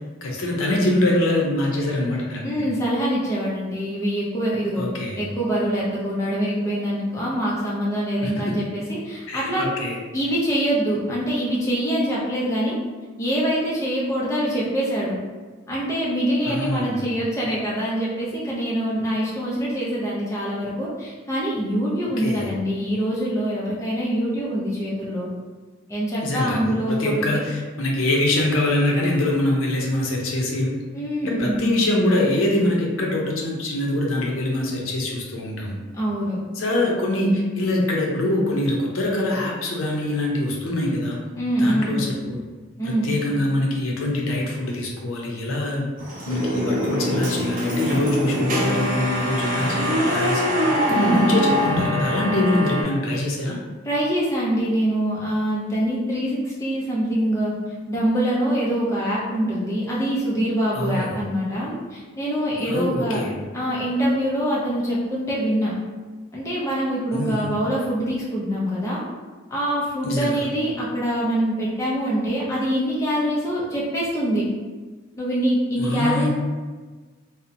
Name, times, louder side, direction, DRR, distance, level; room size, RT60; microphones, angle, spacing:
voice 1, 0.2-2.6 4.8-5.1 9.3-9.9 16.5-16.8 22.2-22.4 26.2-27.4 27.8-30.7 31.4-35.7 36.6-41.2 41.6-42.1 43.0-45.8 46.3-50.4 50.9-53.6 60.8-61.1 62.7-63.3 67.1-67.4 70.0-70.3 75.8-76.3, left 1 dB, 85° left, -1 dB, 0.5 m, -23 dB
voice 2, 2.4-9.6 10.1-12.8 13.2-15.2 15.7-25.3 25.9-27.2 30.9-31.7 35.9-36.4 41.3-42.1 42.8-43.2 50.9-51.4 53.8-63.2 63.5-65.7 66.3-69.0 69.5-74.4 75.2-76.3, equal, 15° left, -6 dB, 0.4 m, -24 dB
sound 1, 46.0-52.8, equal, 40° right, 0.5 m, -23 dB
2.7 x 2.0 x 2.5 m, 1.4 s
head